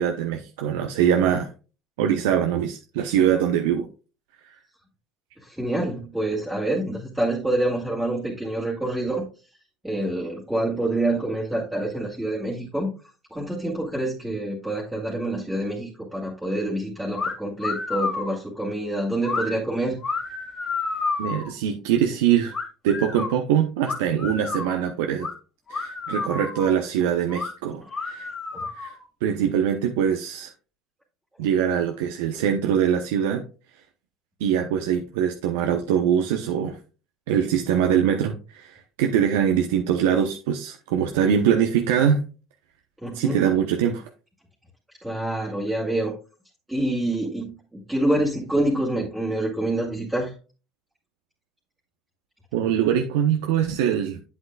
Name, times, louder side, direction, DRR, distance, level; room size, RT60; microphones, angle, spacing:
voice 1, 0.0-1.5 2.0-3.9 4.5-4.6 21.2-22.6 22.8-25.3 25.7-28.3 28.8-29.0 29.2-30.5 31.4-33.4 34.4-36.8 37.3-42.2 43.1-44.0 52.5-54.2, right 9 dB, 80° right, 4 dB, 0.8 m, -23 dB
voice 2, 5.4-9.2 9.8-12.9 13.3-20.0 27.8-27.9 43.0-43.4 45.0-46.1 46.7-50.3, right 1 dB, 5° right, -5 dB, 2.2 m, -26 dB
sound 1, 17.1-17.3 17.6-18.4 19.2-19.5 20.0-21.5 22.5-23.3 23.8-24.8 25.2-25.3 25.7-26.7 27.3-27.5 27.9-29.0, left 4 dB, 35° left, 1.9 m, -30 dB
8.2 x 8.1 x 2.3 m, 0.34 s
hypercardioid pair, 85°, 0 cm